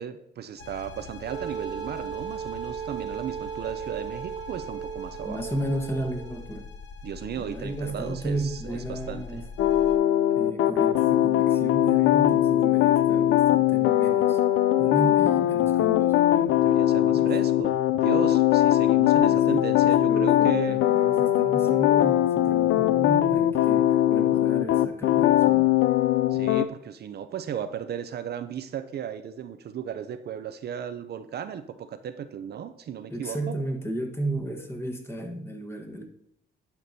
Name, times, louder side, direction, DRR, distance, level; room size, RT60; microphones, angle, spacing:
voice 1, 0.0-5.4 7.0-9.4 16.6-20.8 26.3-33.6, right 8 dB, 55° right, 11 dB, 0.5 m, -35 dB
sound 1, 0.6-10.0, left 4 dB, 60° left, 1.2 m, -43 dB
Wind instrument woodwind instrument, 1.3-6.4, right 8 dB, 25° right, 0.8 m, -36 dB
voice 2, 5.2-6.7 7.4-9.4 10.4-14.4 14.8-16.6 17.1-17.3 19.2-25.7 33.1-36.1, right 1 dB, 10° left, 3 dB, 1.3 m, -34 dB
sound 2, 9.6-26.7, left 12 dB, 80° left, 0.4 m, -21 dB
11.0 x 5.9 x 2.7 m, 0.76 s
cardioid pair, 90°, 20 cm